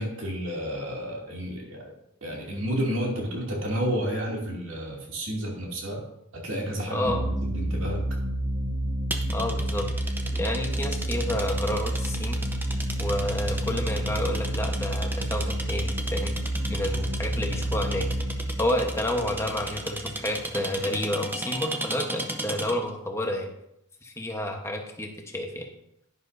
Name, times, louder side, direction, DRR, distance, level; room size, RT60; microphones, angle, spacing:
voice 1, 0.0-1.9 2.2-6.0 6.3-8.0, equal, 65° right, -2 dB, 2.7 m, -31 dB
voice 2, 6.9-7.2 9.3-9.9 10.3-12.4 13.0-16.3 16.7-18.0 18.6-23.5 24.0-25.7, left 1 dB, 15° left, 2 dB, 1.2 m, -30 dB
sound 1, 7.0-20.3, right 1 dB, 35° right, 2.4 m, -29 dB
sound 2, 9.1-22.9, right 1 dB, 10° right, 0.7 m, -36 dB
11.5 x 10.0 x 2.7 m, 0.80 s
head